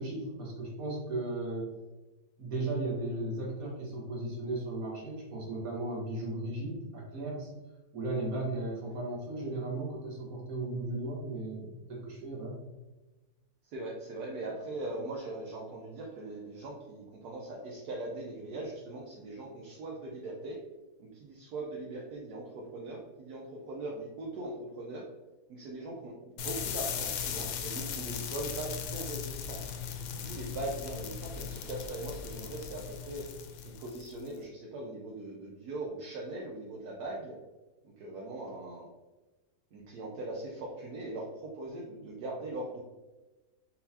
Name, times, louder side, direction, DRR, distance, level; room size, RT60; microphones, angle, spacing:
voice 1, 0.0-1.7 2.4-7.5 7.9-12.6, right 2 dB, 60° right, -2 dB, 1.7 m, -36 dB
voice 2, 13.6-20.6 21.0-25.1 25.5-29.6 30.3-33.2 33.6-37.4 38.0-38.9 39.7-42.8, right 2 dB, 80° right, -2 dB, 1.2 m, -40 dB
sound 1, 26.4-34.3, left 8 dB, 70° left, 0.9 m, -38 dB
4.2 x 4.0 x 2.7 m, 1.1 s
omnidirectional pair, 1.7 m